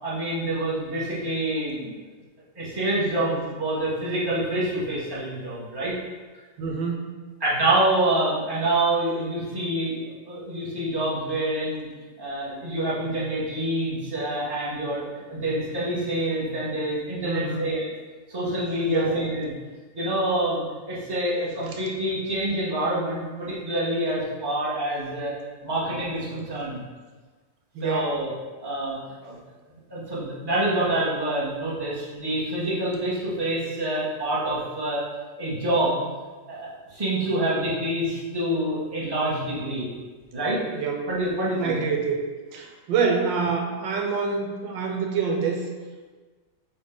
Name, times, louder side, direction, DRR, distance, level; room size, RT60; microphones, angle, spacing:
voice 1, 0.0-2.0 2.5-5.9 7.4-11.9 12.2-17.9 18.3-19.5 19.9-25.3 25.6-26.8 27.8-28.3 28.6-29.4 29.9-35.0 35.4-36.0 36.5-39.9 40.3-40.6 41.1-41.8, right 1 dB, 15° right, -8 dB, 1.3 m, -27 dB
voice 2, 6.6-7.1 17.2-17.7 18.8-19.2 27.7-28.1 40.7-41.1 41.6-42.2 42.5-45.6, right 5 dB, 90° right, 2 dB, 1.5 m, -26 dB
8.5 x 2.9 x 3.9 m, 1.4 s
omnidirectional pair, 2.0 m